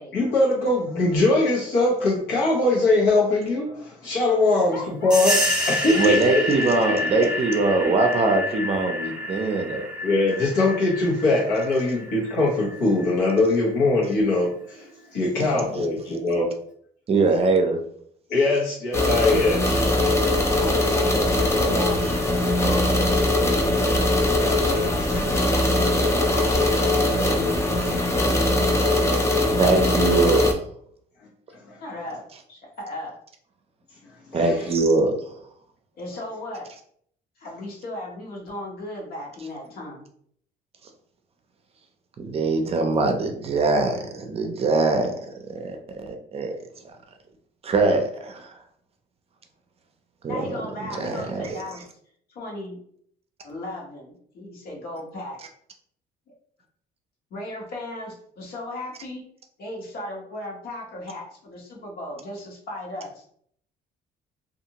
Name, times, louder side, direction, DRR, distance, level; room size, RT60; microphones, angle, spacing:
voice 1, 0.1-5.4 5.7-6.4 6.9-7.0 10.0-16.5 18.3-19.7 31.6-31.8 34.3-34.6, left 2 dB, 85° left, -4 dB, 0.9 m, -22 dB
voice 2, 4.7-5.1 6.6-6.7 19.9-23.2 23.5-25.7 26.1-28.2 31.8-32.2 32.5-33.1 36.0-36.7 37.4-40.0 50.3-51.8 52.3-52.8 53.4-55.4 57.3-59.2 59.6-63.2, left 1 dB, 65° left, -2 dB, 1.1 m, -36 dB
sound 1, 5.1-13.4, left 1 dB, 5° right, 0.8 m, -28 dB
voice 3, 6.0-9.9 15.4-15.9 17.1-17.8 19.7-19.8 22.1-22.2 25.7-25.9 27.8-27.9 29.6-30.5 34.3-35.3 42.2-46.5 46.8-46.9 47.6-48.6 50.2-50.5 51.0-51.6, right 3 dB, 35° right, 5 dB, 0.5 m, -23 dB
sound 2, 18.9-30.5, left 1 dB, 15° left, 0.5 m, -21 dB
2.6 x 2.5 x 2.8 m, 0.64 s
cardioid pair, 110°, 17 cm